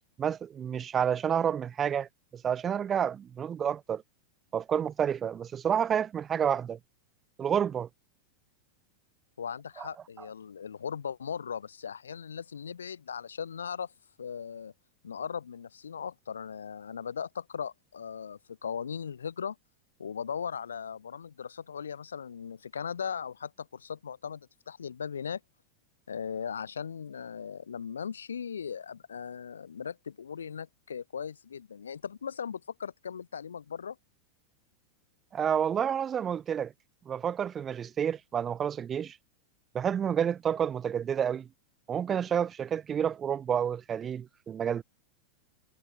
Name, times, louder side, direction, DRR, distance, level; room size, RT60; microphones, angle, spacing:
voice 1, 0.2-4.0 4.5-6.8 7.4-7.9 9.8-9.9 35.3-36.7 37.1-39.2 39.7-41.5 41.9-44.8, right 8 dB, 25° right, 0.5 m, -29 dB
voice 2, 9.4-13.9 14.2-14.7 15.0-19.6 20.0-25.4 26.1-34.0, left 7 dB, 70° left, 2.3 m, -38 dB
figure-of-eight pair, 90°, 0 cm